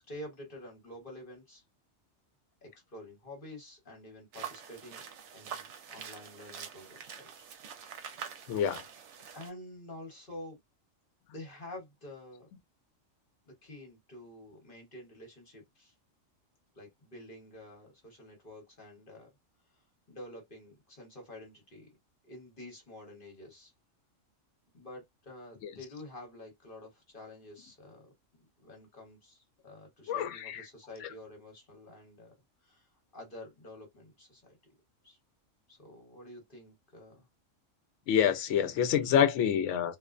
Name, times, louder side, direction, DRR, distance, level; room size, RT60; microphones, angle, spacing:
voice 1, 0.1-1.6 2.6-5.0 5.3-7.5 9.3-10.6 11.3-12.5 13.5-15.9 16.7-19.3 20.1-21.9 22.2-23.7 24.7-28.1 28.6-32.3 32.6-32.9 33.1-34.6 35.0-35.2 35.7-37.3, left 1 dB, 45° left, 1.2 m, -49 dB
sound 1, 4.3-9.5, right 7 dB, 65° right, 0.9 m, -45 dB
voice 2, 8.5-8.8 30.1-30.6 31.0-31.1 38.1-40.0, left 8 dB, 70° left, 0.9 m, -27 dB
2.5 x 2.1 x 2.4 m
omnidirectional pair, 1.4 m